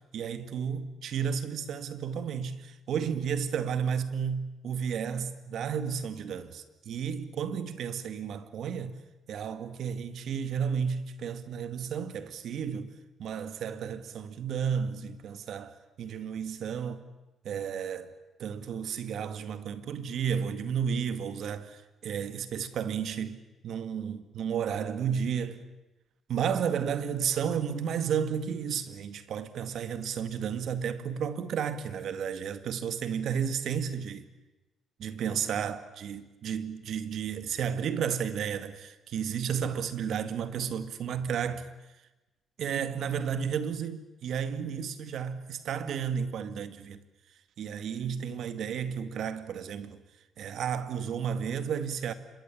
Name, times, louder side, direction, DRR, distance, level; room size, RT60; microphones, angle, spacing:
voice 1, 0.0-9.0 9.3-12.9 13.2-17.0 17.4-18.1 18.4-25.6 26.3-34.3 35.0-41.7 42.6-47.0 47.6-50.0 50.4-52.1, right 7 dB, 70° right, 2.0 m, -32 dB
26.5 x 22.0 x 8.7 m
cardioid pair, 90°, 0 cm